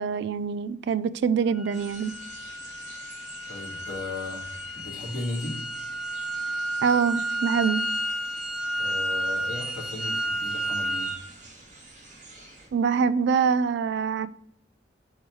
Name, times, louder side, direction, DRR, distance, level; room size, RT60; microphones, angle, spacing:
voice 1, 0.0-2.1 6.8-7.8 12.7-14.3, right 6 dB, 65° right, 0.3 m, -24 dB
sound 1, 1.5-11.2, right 1 dB, ahead, 0.5 m, -31 dB
sound 2, 1.7-12.7, right 2 dB, 45° right, 2.4 m, -47 dB
voice 2, 3.5-4.5 4.8-5.6 8.7-11.2, left 2 dB, 55° left, 2.0 m, -36 dB
4.6 x 4.6 x 4.5 m
head